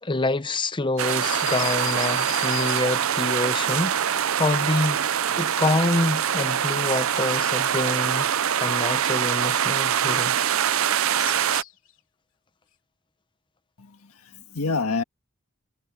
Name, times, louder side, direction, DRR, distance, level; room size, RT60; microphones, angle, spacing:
voice 1, 0.0-5.1 5.4-8.3 8.6-10.4, left 2 dB, 20° left, 0.7 m, -26 dB
sound 1, 0.9-3.2 11.2-11.9, left 11 dB, 65° left, 3.7 m, -36 dB
sound 2, 1.0-11.6, right 9 dB, 70° right, 0.6 m, -24 dB
voice 2, 13.8-15.0, left 4 dB, 85° left, 1.7 m, -28 dB
head